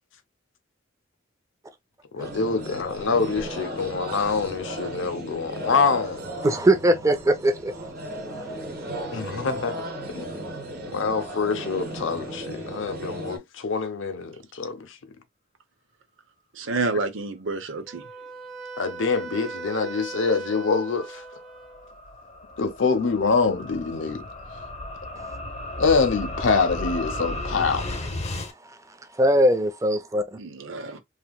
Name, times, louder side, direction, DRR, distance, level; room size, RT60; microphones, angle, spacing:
voice 1, 2.1-6.2 9.1-9.8 10.1-10.3 10.9-15.0 18.8-21.2 22.6-24.2 25.8-27.9, left 4 dB, 70° left, 0.6 m, -25 dB
sound 1, 2.2-13.4, right 1 dB, 55° right, 1.0 m, -35 dB
voice 2, 6.4-7.7 29.2-30.2, right 1 dB, 15° right, 0.5 m, -20 dB
voice 3, 16.6-18.0 30.4-31.0, right 3 dB, 75° right, 0.7 m, -29 dB
Wind instrument woodwind instrument, 17.9-21.9, right 4 dB, ahead, 0.9 m, -39 dB
sound 2, 20.7-28.5, left 2 dB, 35° left, 0.8 m, -34 dB
3.3 x 2.8 x 2.2 m
head